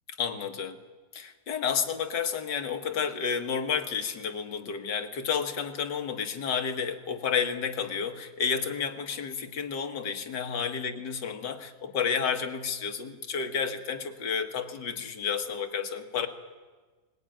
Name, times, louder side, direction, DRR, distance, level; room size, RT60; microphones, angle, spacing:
voice 1, 0.2-0.8 1.1-16.3, left 6 dB, 75° left, 7 dB, 2.0 m, -31 dB
20.5 x 20.5 x 9.0 m, 1.4 s
omnidirectional pair, 1.9 m